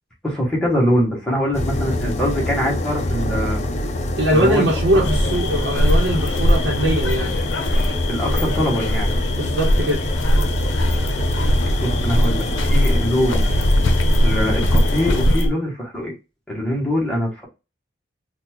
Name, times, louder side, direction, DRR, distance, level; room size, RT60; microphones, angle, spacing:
voice 1, 0.2-3.6 4.3-5.0 8.1-9.1 11.8-13.4 14.2-16.1 16.5-17.4, equal, 5° left, 1.1 m, -23 dB
sound 1, 1.5-15.3, left 1 dB, 35° left, 0.4 m, -25 dB
voice 2, 4.2-7.3 9.3-10.0, right 1 dB, 70° right, 0.9 m, -21 dB
sound 2, 5.0-15.5, left 1 dB, 85° left, 0.6 m, -20 dB
3.8 x 2.3 x 2.9 m
head